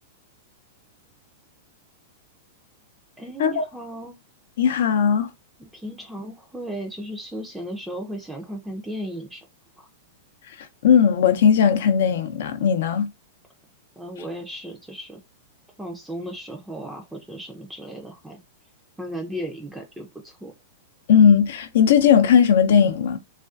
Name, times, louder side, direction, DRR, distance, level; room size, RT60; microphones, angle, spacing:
voice 1, 3.2-4.2 5.7-9.5 9.8-9.9 14.0-15.2 15.8-18.4 19.0-20.5, equal, 5° right, 0.4 m, -35 dB
voice 2, 4.6-5.3 10.6-13.1 21.1-23.2, left 7 dB, 70° left, 0.5 m, -18 dB
2.4 x 2.3 x 2.4 m
hypercardioid pair, 120°, 0 cm